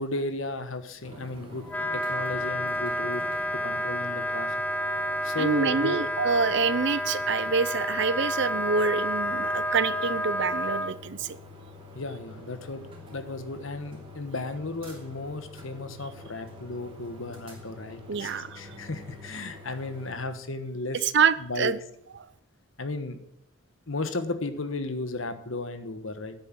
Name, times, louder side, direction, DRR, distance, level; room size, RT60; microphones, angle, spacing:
voice 1, 0.0-1.7 1.9-3.2 3.6-4.6 5.2-6.0 11.9-12.9 13.1-21.0 21.4-21.7 22.8-23.2 23.9-26.3, left 2 dB, 70° left, 10 dB, 1.3 m, -34 dB
sound 1, 1.0-20.1, left 2 dB, 25° right, 3.1 m, -47 dB
Wind instrument woodwind instrument, 1.7-10.9, equal, 10° left, 0.6 m, -30 dB
voice 2, 5.4-11.4 18.1-18.6 20.9-21.8, right 5 dB, 55° right, 16 dB, 0.6 m, -26 dB
9.8 x 8.2 x 7.6 m, 0.74 s
head